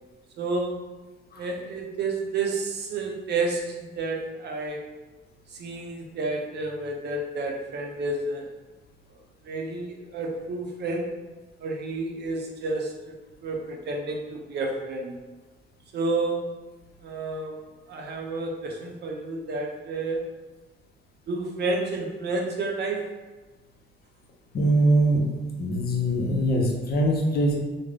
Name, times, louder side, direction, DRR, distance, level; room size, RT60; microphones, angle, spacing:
voice 1, 0.4-0.8 1.4-4.8 5.5-8.4 9.4-11.1 11.6-13.1 13.4-15.2 15.9-16.5 17.0-17.6 17.9-20.2 21.3-23.1, right 3 dB, 60° right, 1 dB, 0.5 m, -30 dB
voice 2, 24.5-25.2 25.5-27.6, right 1 dB, 50° left, 0 dB, 0.6 m, -22 dB
2.3 x 2.0 x 3.2 m, 1.2 s
cardioid pair, 90°, 20 cm